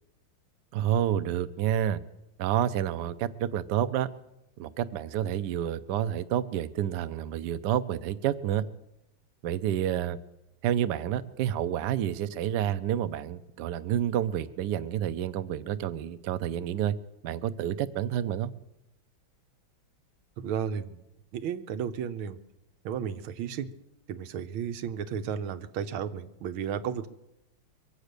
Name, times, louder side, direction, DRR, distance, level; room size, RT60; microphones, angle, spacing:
voice 1, 0.7-2.0 2.4-4.1 4.6-8.6 9.4-10.2 10.6-16.9 17.2-18.5, right 10 dB, 70° right, 12 dB, 1.1 m, -29 dB
voice 2, 20.4-21.0 21.3-22.4 22.8-23.7 24.1-27.1, right 8 dB, 85° right, 10 dB, 1.6 m, -33 dB
23.0 x 8.1 x 6.6 m, 0.88 s
omnidirectional pair, 2.3 m